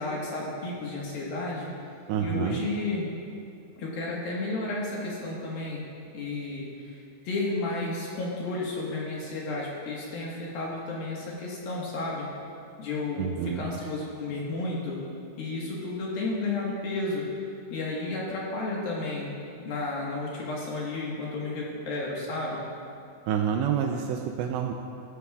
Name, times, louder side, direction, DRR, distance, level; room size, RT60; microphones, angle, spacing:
voice 1, 0.0-1.7 2.2-3.1 3.8-5.8 6.1-7.0 7.2-12.3 12.8-15.0 15.4-17.2 17.7-19.3 19.6-22.7, left 2 dB, 65° left, -4 dB, 2.8 m, -32 dB
voice 2, 2.1-2.6 13.2-13.7 23.3-24.7, right 8 dB, 85° right, 3 dB, 2.6 m, -28 dB
17.0 x 12.5 x 2.4 m, 2.5 s
omnidirectional pair, 5.5 m